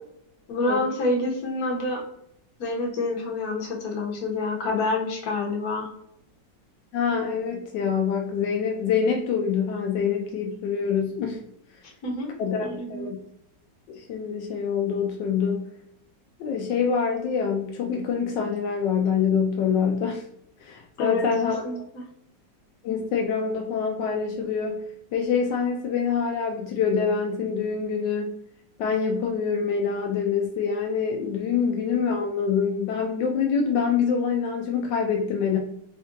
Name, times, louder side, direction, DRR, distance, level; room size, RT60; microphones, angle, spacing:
voice 1, 0.5-2.0 2.6-5.9 12.0-12.3 12.6-13.1 21.0-21.3 21.6-22.0, left 2 dB, 60° left, 0 dB, 1.4 m, -27 dB
voice 2, 6.9-11.4 12.4-13.2 13.9-15.6 16.4-20.3 20.6-21.7 22.8-24.8 25.1-28.3 28.8-35.6, left 6 dB, 85° left, 2 dB, 1.2 m, -25 dB
3.4 x 2.6 x 3.7 m, 0.72 s
omnidirectional pair, 1.9 m